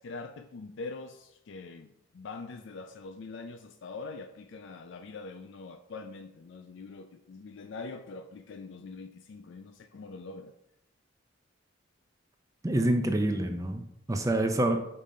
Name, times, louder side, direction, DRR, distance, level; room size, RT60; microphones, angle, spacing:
voice 1, 0.0-10.5, left 3 dB, 60° left, 7 dB, 0.4 m, -43 dB
voice 2, 12.6-14.8, right 1 dB, 15° right, 6 dB, 0.4 m, -27 dB
5.4 x 5.0 x 4.2 m, 0.80 s
head